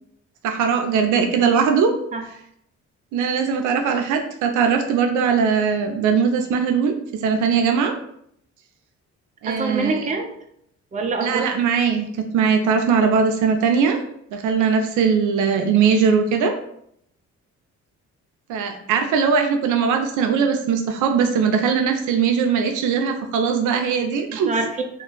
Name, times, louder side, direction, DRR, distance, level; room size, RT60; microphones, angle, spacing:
voice 1, 0.4-1.9 3.1-8.0 9.4-10.0 11.2-14.0 14.3-16.5 18.5-24.5, right 6 dB, 85° right, 5 dB, 0.5 m, -20 dB
voice 2, 9.4-10.3 10.9-11.5 13.0-13.2 24.3-25.0, right 3 dB, 25° right, 3 dB, 0.5 m, -26 dB
2.5 x 2.3 x 3.8 m, 0.70 s
cardioid pair, 90°, 30 cm